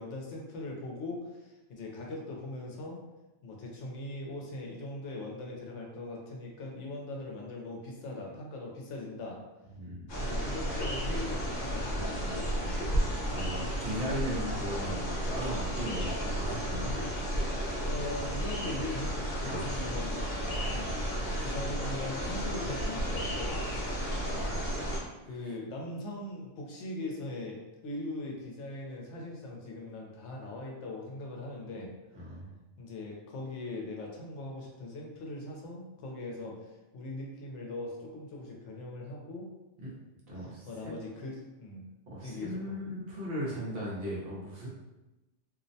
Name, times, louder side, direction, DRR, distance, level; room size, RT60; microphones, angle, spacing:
voice 1, 0.0-3.0 3.4-9.4 10.2-13.0 17.8-20.2 20.7-21.0 21.4-23.6 25.3-31.9 32.8-39.5 40.4-41.8 42.2-42.8, left 2 dB, 75° left, -1 dB, 0.9 m, -40 dB
voice 2, 9.7-10.1 13.3-16.9 19.4-19.6 20.9-21.5 24.0-24.5 25.2-25.5 32.1-32.5 39.8-39.9 40.3-40.9 42.1-44.7, equal, 55° right, -6 dB, 0.9 m, -38 dB
sound 1, 10.1-25.0, equal, 50° left, 0.9 m, -33 dB
2.5 x 2.0 x 2.6 m, 1.0 s
omnidirectional pair, 1.3 m